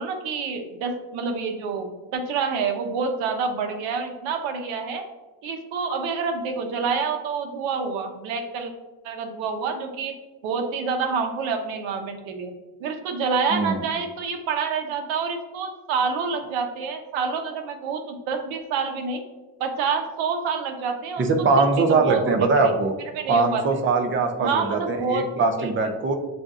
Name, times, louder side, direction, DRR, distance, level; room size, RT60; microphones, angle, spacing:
voice 1, 0.0-5.0 5.4-8.7 9.0-10.1 10.4-12.5 12.8-19.2 19.6-22.8 23.1-23.6 24.4-25.2 25.6-25.9, right 5 dB, 85° right, 5 dB, 0.8 m, -27 dB
voice 2, 13.5-13.8 21.2-22.9 23.3-26.1, right 3 dB, 25° right, 5 dB, 0.5 m, -21 dB
7.5 x 2.6 x 2.4 m, 1.2 s
cardioid pair, 125°, 46 cm